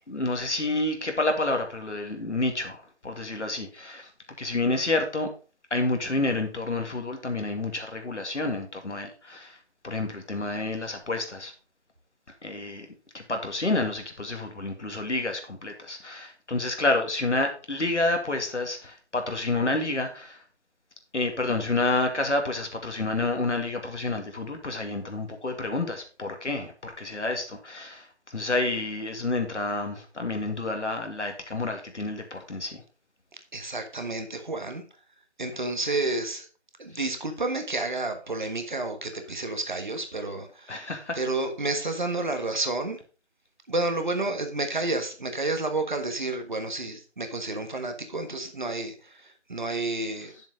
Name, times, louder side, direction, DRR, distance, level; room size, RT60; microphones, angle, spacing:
voice 1, 0.1-4.1 4.4-5.3 5.7-9.6 9.8-11.5 12.4-12.9 13.1-20.4 21.1-32.8 40.7-41.2, left 2 dB, 85° left, 2.3 m, -29 dB
voice 2, 33.5-34.8 35.4-36.5 36.8-43.0 43.7-50.3, right 2 dB, 45° right, 1.4 m, -30 dB
8.0 x 7.2 x 3.8 m
figure-of-eight pair, 170°, 34 cm